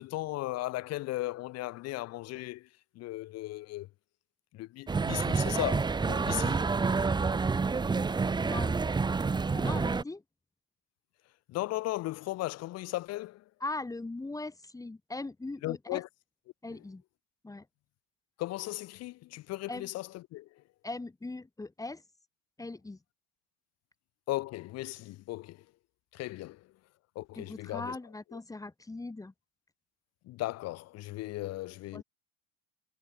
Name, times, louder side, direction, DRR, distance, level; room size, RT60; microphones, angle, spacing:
voice 1, 0.0-2.7 2.9-3.9 4.5-6.6 11.5-13.4 15.6-16.1 16.7-16.8 18.4-20.5 24.3-25.6 26.1-26.6 27.1-28.0 30.2-32.0, left 17 dB, 55° left, 1.1 m, -36 dB
sound 1, 4.9-10.0, right 4 dB, 15° right, 1.0 m, -28 dB
voice 2, 8.4-8.8 9.5-10.2 13.6-16.0 16.6-17.0 17.4-17.7 19.7-19.9 20.8-22.0 22.6-23.0 27.4-29.3 31.9-32.0, left 2 dB, 10° left, 4.1 m, -39 dB
cardioid pair, 125°, 31 cm